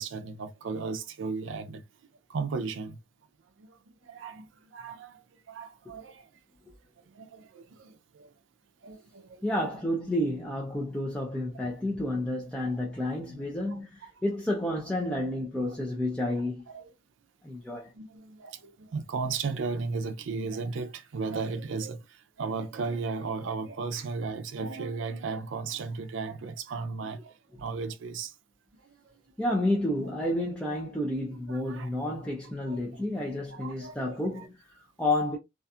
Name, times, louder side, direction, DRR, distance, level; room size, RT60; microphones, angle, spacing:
voice 1, 0.0-1.8 2.3-3.0 3.6-3.7 4.1-4.5 4.7-5.2 5.5-6.3 7.1-8.3 8.8-9.6 11.5-11.7 12.7-13.0 13.7-14.1 16.7-16.9 17.9-22.0 22.4-27.3 27.6-28.3 29.1-29.2 31.5-31.9 32.6-34.5, right 4 dB, 75° right, 0.4 m, -35 dB
voice 2, 9.4-16.6 17.4-17.9 29.4-35.4, left 1 dB, 5° left, 0.5 m, -30 dB
2.4 x 2.3 x 2.7 m
head